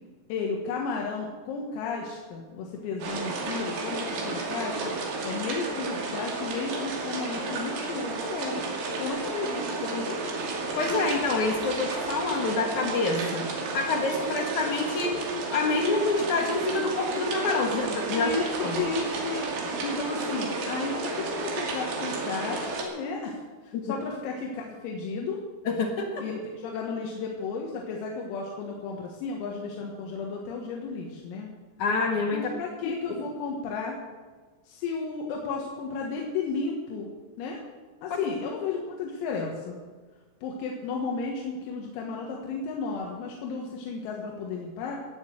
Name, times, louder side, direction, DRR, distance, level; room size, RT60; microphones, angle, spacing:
voice 1, 0.3-4.8 5.2-8.7 9.0-10.4 18.1-19.5 19.8-25.4 26.2-31.5 32.3-34.0 34.7-37.1 37.4-37.6 38.0-39.8 40.4-45.0, left 4 dB, 90° left, -1 dB, 4.3 m, -33 dB
sound 1, 3.0-22.8, right 3 dB, 65° right, 4.6 m, -32 dB
voice 2, 10.7-13.5 13.7-15.2 15.5-18.3 18.6-18.8 23.7-23.9 25.7-26.3 31.8-32.5, left 3 dB, 60° left, 2 dB, 2.1 m, -27 dB
17.0 x 9.7 x 7.9 m, 1.4 s
omnidirectional pair, 5.9 m